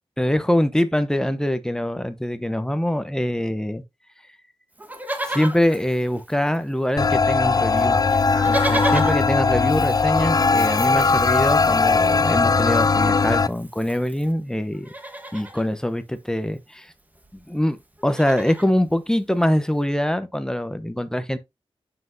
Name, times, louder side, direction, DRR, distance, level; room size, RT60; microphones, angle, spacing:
voice 1, 0.2-3.8 5.2-8.0 8.4-14.9 15.3-16.9 17.3-21.4, left 1 dB, 5° left, 0.8 m, -24 dB
Livestock farm animals working animals, 4.8-6.8 7.0-7.1 7.4-14.3 14.7-15.7 16.9-17.0 17.2-17.4 17.8-18.7 19.4-19.5, right 1 dB, 15° right, 1.3 m, -34 dB
sound 1, 7.0-13.5, left 4 dB, 40° left, 0.4 m, -19 dB
7.5 x 5.9 x 2.7 m
wide cardioid pair, 70°, 10 cm